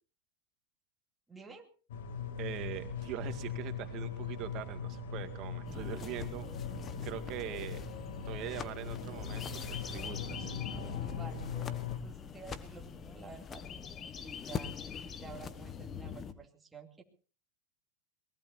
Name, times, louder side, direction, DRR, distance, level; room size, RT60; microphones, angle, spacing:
voice 1, 1.3-1.7 11.0-13.6 14.2-14.8 15.2-17.0, right 5 dB, 10° right, 1 dB, 2.7 m, -51 dB
sound 1, 1.9-12.0, left 6 dB, 75° left, 2.7 m, -40 dB
voice 2, 2.4-6.5 7.0-7.8 8.3-10.5, right 12 dB, 45° right, 7 dB, 2.1 m, -42 dB
sound 2, 5.6-16.3, left 7 dB, 30° left, 1.3 m, -43 dB
23.0 x 19.5 x 2.7 m, 0.36 s
hypercardioid pair, 105°, 0 cm